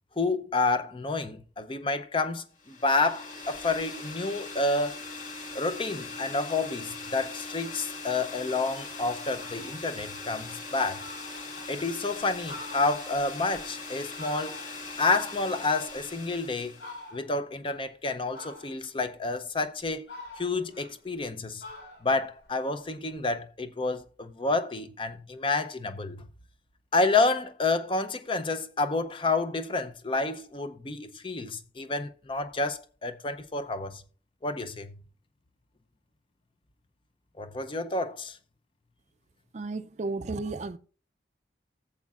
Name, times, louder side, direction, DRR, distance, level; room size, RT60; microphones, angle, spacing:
voice 1, 0.2-5.0 5.5-11.0 11.7-14.6 15.0-16.7 17.1-21.6 22.0-26.3 26.9-34.0 34.4-35.0 37.4-38.4, left 3 dB, 30° left, 0.6 m, -29 dB
sound 1, 2.6-17.1, left 3 dB, 45° left, 2.1 m, -41 dB
Fowl, 9.4-9.8 10.3-10.4 10.7-10.8 11.0-11.9 12.3-14.9 15.3-16.3 16.8-17.4 18.3-19.0 19.6-21.3 21.6-23.2, left 2 dB, 80° left, 3.9 m, -46 dB
voice 2, 39.5-40.8, right 3 dB, 40° right, 0.4 m, -33 dB
16.0 x 7.3 x 2.4 m
head